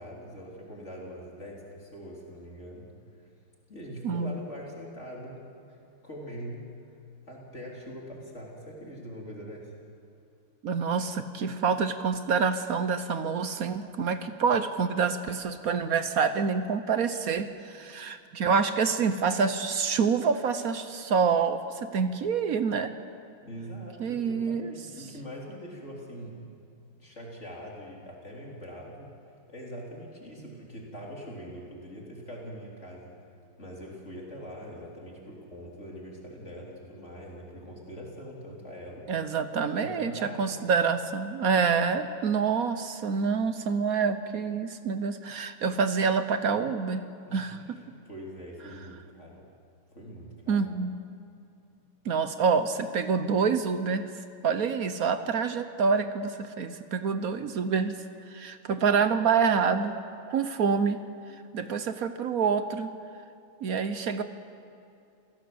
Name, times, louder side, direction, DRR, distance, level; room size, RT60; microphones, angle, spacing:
voice 1, 0.0-3.3 3.7-5.4 5.7-7.0 7.3-9.7 23.4-26.3 27.0-29.1 29.5-33.1 33.6-39.1 39.7-40.6 47.3-49.4 49.9-50.7, equal, 30° left, -2 dB, 3.9 m, -43 dB
voice 2, 4.0-4.4 10.6-22.9 24.0-24.7 39.1-47.6 50.5-51.0 52.0-57.9 58.3-60.0 60.3-61.0 61.5-62.9 63.6-64.2, right 5 dB, 60° right, 10 dB, 1.0 m, -27 dB
28.0 x 17.0 x 7.8 m, 2.6 s
omnidirectional pair, 2.4 m